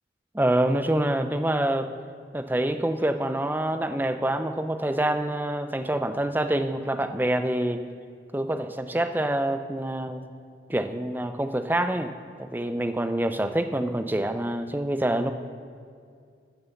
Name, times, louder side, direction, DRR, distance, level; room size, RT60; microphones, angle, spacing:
voice 1, 0.3-1.9 2.3-7.8 8.3-10.2 10.7-12.1 12.4-15.3, right 1 dB, 10° right, 9 dB, 0.5 m, -26 dB
14.0 x 6.7 x 7.1 m, 2.2 s
head